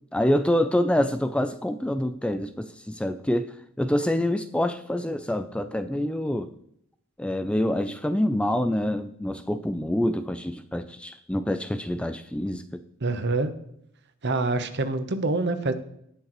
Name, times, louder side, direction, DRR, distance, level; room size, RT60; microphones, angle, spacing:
voice 1, 0.1-6.5 7.2-12.8, left 1 dB, 5° left, 10 dB, 0.3 m, -26 dB
voice 2, 13.0-13.5 14.2-15.7, right 3 dB, 55° right, 10 dB, 1.0 m, -26 dB
18.5 x 6.4 x 3.1 m, 0.73 s
head